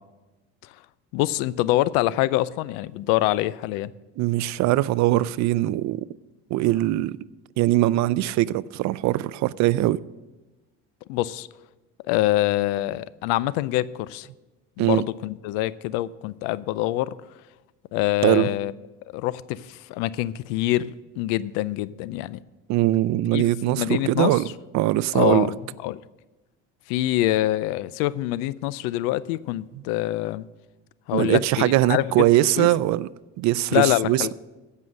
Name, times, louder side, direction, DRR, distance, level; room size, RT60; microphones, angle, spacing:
voice 1, 1.1-3.9 11.1-11.5 12.1-14.3 14.8-17.1 17.9-18.7 19.1-22.4 23.3-23.4 23.8-24.4 25.1-25.6 25.8-26.0 26.9-30.5 31.1-32.3 32.6-32.7 33.7-34.3, left 16 dB, 90° left, 0.5 m, -25 dB
voice 2, 4.2-6.1 6.5-7.1 7.6-10.0 14.8-15.0 18.2-18.5 22.7-24.5 24.7-25.5 31.1-33.1 33.4-34.3, right 16 dB, 60° right, 0.4 m, -21 dB
15.5 x 5.6 x 6.3 m
cardioid pair, 105°, 32 cm